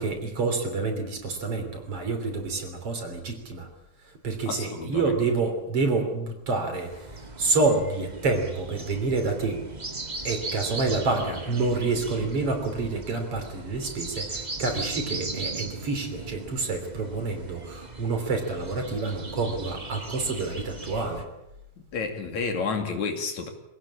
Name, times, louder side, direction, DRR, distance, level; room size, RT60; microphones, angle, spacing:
voice 1, 0.0-3.7 4.2-6.9 7.4-9.6 10.2-21.3, right 3 dB, 50° right, 4.2 m, -28 dB
voice 2, 4.5-5.2 21.9-23.5, left 4 dB, 70° left, 3.8 m, -30 dB
sound 1, 6.9-21.2, right 3 dB, 20° right, 1.4 m, -38 dB
25.0 x 17.5 x 8.6 m
omnidirectional pair, 3.4 m